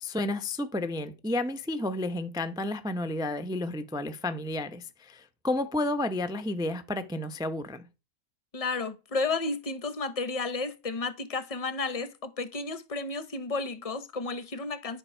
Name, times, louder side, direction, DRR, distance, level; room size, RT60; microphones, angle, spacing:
voice 1, 0.0-7.8, left 2 dB, 5° right, 0.3 m, -31 dB
voice 2, 8.5-15.0, left 3 dB, 30° left, 0.7 m, -32 dB
10.5 x 6.9 x 4.4 m
omnidirectional pair, 1.6 m